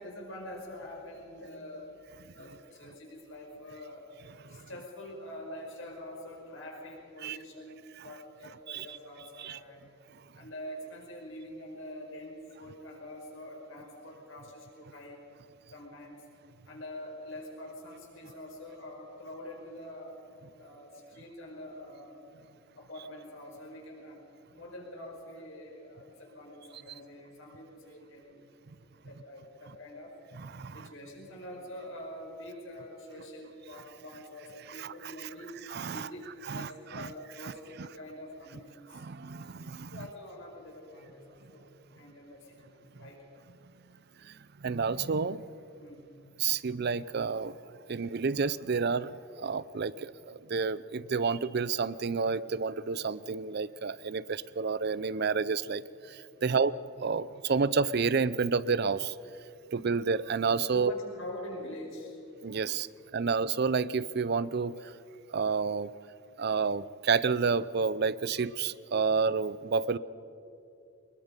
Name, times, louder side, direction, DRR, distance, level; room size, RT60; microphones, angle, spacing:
voice 1, 0.0-1.9 2.3-4.0 4.5-9.9 10.3-15.2 15.7-16.2 16.7-20.2 20.6-22.2 22.8-24.2 24.5-28.4 29.0-30.1 30.7-35.5 35.8-39.0 39.9-43.2 45.8-46.1 56.4-56.6 60.7-62.2, left 1 dB, 65° left, -1 dB, 5.6 m, -45 dB
voice 2, 30.4-30.9 34.8-35.3 35.7-36.1 36.5-37.1 37.4-37.5 37.8-37.9 38.9-40.1 44.2-45.5 46.4-47.6 47.9-55.8 56.1-56.7 57.0-59.2 59.7-60.9 62.4-62.9 63.1-64.9 65.3-65.9 66.4-70.0, right 5 dB, 50° right, 18 dB, 0.5 m, -30 dB
25.0 x 21.0 x 5.2 m, 2.7 s
head